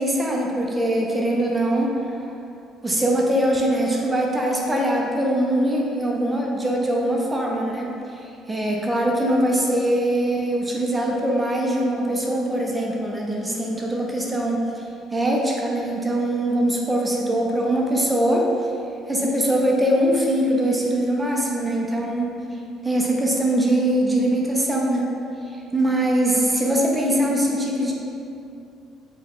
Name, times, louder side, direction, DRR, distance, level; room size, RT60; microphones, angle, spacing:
voice 1, 0.0-2.3 2.8-14.8 15.1-18.7 19.1-22.3 22.8-25.1 25.7-27.9, right 1 dB, 15° right, -1 dB, 0.6 m, -22 dB
4.5 x 2.3 x 3.5 m, 2.6 s
cardioid pair, 95°, 0 cm